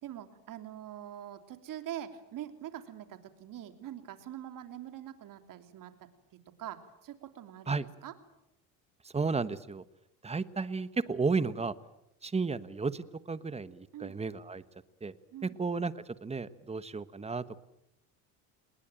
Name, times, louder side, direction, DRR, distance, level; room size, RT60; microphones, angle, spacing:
voice 1, 0.0-6.1 6.6-8.1 13.9-14.2 15.3-15.6, right 11 dB, 55° right, 8 dB, 3.3 m, -44 dB
voice 2, 9.1-9.8 10.2-11.7 12.2-14.6 15.0-15.1 15.4-17.6, right 4 dB, 15° right, 14 dB, 1.3 m, -33 dB
28.5 x 20.5 x 9.0 m, 0.86 s
cardioid pair, 115°, 39 cm